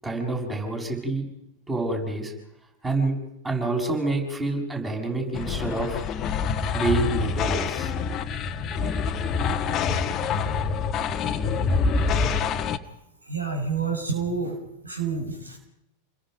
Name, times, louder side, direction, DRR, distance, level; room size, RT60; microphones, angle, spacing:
voice 1, 0.0-1.2 1.7-2.3 2.8-3.2 3.4-6.1 6.7-7.9, right 2 dB, 15° right, 2 dB, 6.9 m, -27 dB
sound 1, 5.3-12.8, left 5 dB, 30° left, 1.4 m, -26 dB
voice 2, 13.3-14.5 14.8-15.6, right 5 dB, 80° right, 3 dB, 6.0 m, -28 dB
29.5 x 21.5 x 5.3 m, 0.85 s
figure-of-eight pair, 90°, 0 cm